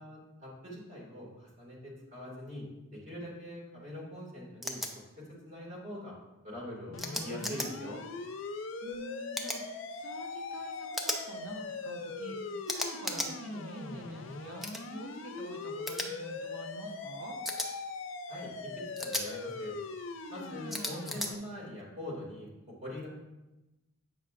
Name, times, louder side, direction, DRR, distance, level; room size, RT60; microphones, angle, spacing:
voice 1, 0.0-2.7 2.9-4.8 5.2-6.1 6.4-8.0 18.3-19.7 20.3-22.5 22.8-23.1, left 1 dB, 35° right, -4 dB, 2.4 m, -43 dB
sound 1, 4.6-4.9 7.0-7.7 9.3-9.6 10.9-11.2 12.7-13.3 14.6-14.8 15.9-16.1 17.5-17.7 19.0-19.3 20.7-21.3, left 1 dB, ahead, 0.5 m, -35 dB
sound 2, 6.9-21.4, left 3 dB, 65° left, 0.5 m, -41 dB
voice 2, 6.9-7.8 8.8-17.4, right 1 dB, 85° right, 0 dB, 1.2 m, -46 dB
8.5 x 5.6 x 2.5 m, 1.0 s
head